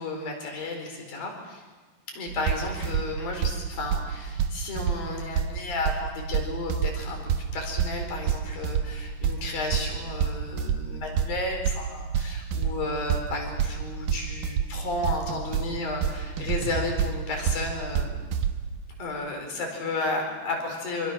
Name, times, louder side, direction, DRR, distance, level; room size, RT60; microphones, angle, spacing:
voice 1, 0.0-1.6 2.1-18.2 19.0-21.1, left 2 dB, 55° left, 2 dB, 6.1 m, -33 dB
sound 1, 2.3-18.8, right 7 dB, 65° right, 2.6 m, -29 dB
26.5 x 25.0 x 6.4 m, 1.3 s
omnidirectional pair, 4.8 m